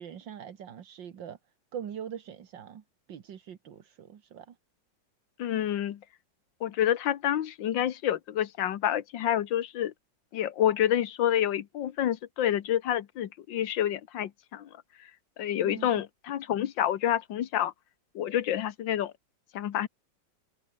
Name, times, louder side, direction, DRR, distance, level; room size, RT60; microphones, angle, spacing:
voice 1, 0.0-1.4 1.7-2.8 3.1-4.6 15.6-16.0, right 8 dB, 80° right, 2.2 m, -42 dB
voice 2, 5.4-6.0 6.6-9.9 10.3-14.7 15.4-17.7 18.1-19.1 19.5-19.9, left 11 dB, 85° left, 1.8 m, -28 dB
omnidirectional pair, 2.0 m